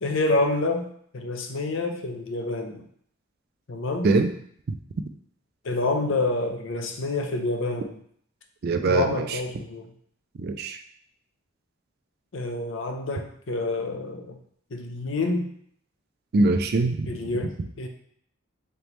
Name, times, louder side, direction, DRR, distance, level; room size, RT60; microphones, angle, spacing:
voice 1, 0.0-2.9 3.7-4.1 5.6-8.0 8.9-9.9 12.3-14.4 14.7-15.5 17.1-17.9, left 2 dB, 70° left, 4 dB, 0.6 m, -28 dB
voice 2, 8.6-9.4 10.4-10.8 16.3-17.1, right 3 dB, 50° right, 8 dB, 0.4 m, -23 dB
3.9 x 3.4 x 3.0 m, 0.64 s
head